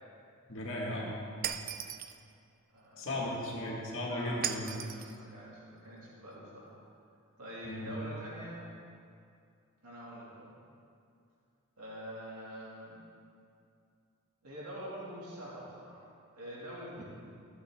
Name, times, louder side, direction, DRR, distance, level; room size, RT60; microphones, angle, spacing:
voice 1, 0.5-1.2 3.0-4.6 7.6-7.9 17.0-17.1, left 1 dB, 60° left, -3 dB, 2.1 m, -36 dB
Shatter, 1.4-2.2 4.4-5.2, right 9 dB, 40° right, 0.4 m, -37 dB
voice 2, 2.7-3.4 4.0-6.8 7.4-8.6 9.8-10.6 11.8-13.0 14.4-16.1 16.4-17.0, equal, 90° right, -7 dB, 2.6 m, -46 dB
15.0 x 7.8 x 3.7 m, 2.4 s
head